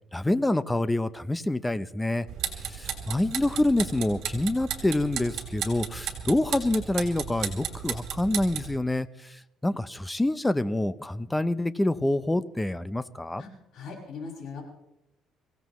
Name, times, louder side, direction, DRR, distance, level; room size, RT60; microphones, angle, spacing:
voice 1, 0.1-2.3 2.6-13.4, left 1 dB, 10° left, 14 dB, 0.6 m, -27 dB
sound 1, 2.3-8.8, right 9 dB, 65° right, 3.1 m, -35 dB
voice 2, 13.4-14.6, left 4 dB, 60° left, 0 dB, 5.9 m, -40 dB
25.0 x 16.0 x 3.1 m, 0.88 s
cardioid pair, 140°, 0 cm